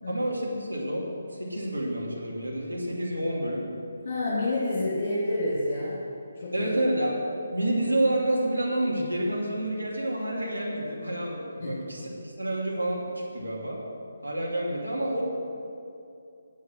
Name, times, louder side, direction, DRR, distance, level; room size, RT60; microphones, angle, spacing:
voice 1, 0.1-1.0 1.3-3.7 6.5-7.2 7.5-13.8 14.2-15.2, right 1 dB, 80° right, -4 dB, 2.8 m, -29 dB
voice 2, 4.0-6.0 6.3-6.7 11.6-11.7, left 2 dB, 45° left, -8 dB, 3.0 m, -28 dB
8.3 x 8.2 x 7.6 m, 2.6 s
figure-of-eight pair, 145°, 0 cm